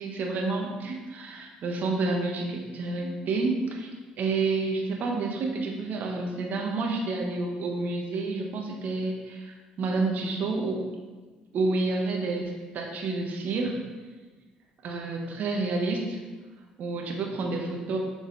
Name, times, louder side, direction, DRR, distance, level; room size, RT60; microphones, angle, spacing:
voice 1, 0.0-10.9 11.5-13.8 14.8-16.2 16.8-18.0, right 3 dB, 60° right, 1 dB, 1.1 m, -29 dB
7.0 x 4.0 x 3.9 m, 1.4 s
hypercardioid pair, 60°, 3 cm